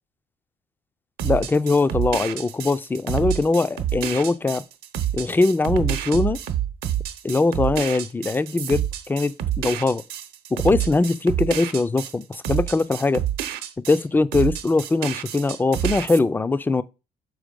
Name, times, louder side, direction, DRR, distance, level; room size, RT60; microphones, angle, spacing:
voice 1, 1.2-4.6 5.1-6.4 7.2-10.0 10.5-13.2 13.9-16.8, left 3 dB, 10° left, 0.4 m, -21 dB
sound 1, 1.2-14.0 14.3-16.2, right 11 dB, 70° right, 0.9 m, -28 dB
6.2 x 4.5 x 5.2 m
cardioid pair, 110°, 17 cm